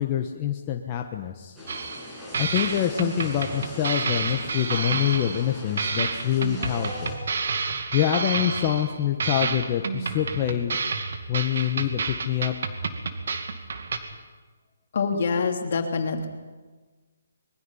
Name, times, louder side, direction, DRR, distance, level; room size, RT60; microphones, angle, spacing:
voice 1, 0.0-1.6 2.4-7.1 7.9-10.8 11.3-12.5, left 11 dB, 30° left, 3 dB, 1.2 m, -26 dB
sound 1, 1.6-7.2, left 1 dB, 5° right, 6.7 m, -40 dB
sound 2, 1.7-2.1 2.3-5.5 5.8-8.9 9.2-14.0, right 4 dB, 65° right, 2.3 m, -30 dB
voice 2, 14.9-16.3, left 5 dB, 55° left, 4 dB, 3.0 m, -25 dB
24.5 x 21.0 x 5.7 m, 1.4 s
hypercardioid pair, 155°, 0 cm